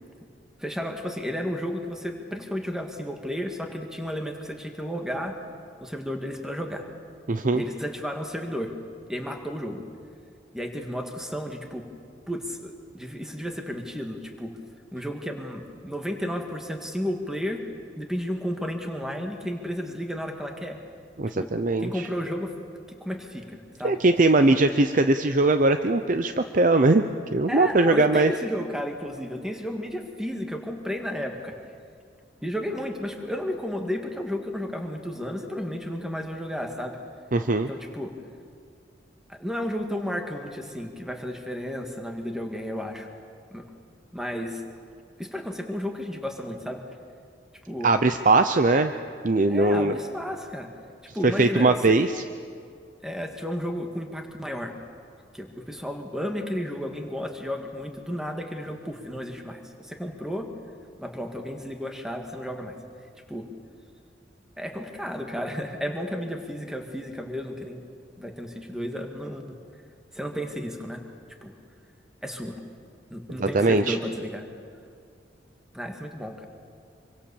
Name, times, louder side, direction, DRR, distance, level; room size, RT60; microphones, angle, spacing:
voice 1, 0.6-5.4 5.8-6.8 7.5-8.7 9.1-9.8 10.5-11.9 12.3-14.6 14.9-17.6 18.0-20.8 21.4-21.5 21.8-22.5 22.9-24.0 27.5-31.6 32.4-37.0 37.7-38.1 39.3-43.1 43.5-43.7 44.1-44.6 45.2-46.8 47.7-47.9 49.5-50.7 51.1-51.8 53.0-54.7 55.3-60.5 61.0-62.8 63.3-63.5 64.6-67.8 68.2-69.4 70.1-71.0 71.4-71.5 72.2-72.6 73.1-74.5 75.7-76.5, equal, 5° right, 3 dB, 1.9 m, -33 dB
voice 2, 7.3-7.6 21.2-22.1 23.8-27.0 27.3-28.3 37.3-37.7 47.8-48.9 49.2-50.0 51.2-52.2 73.4-74.0, right 2 dB, 45° right, 8 dB, 0.6 m, -20 dB
25.5 x 24.0 x 7.1 m, 2.3 s
head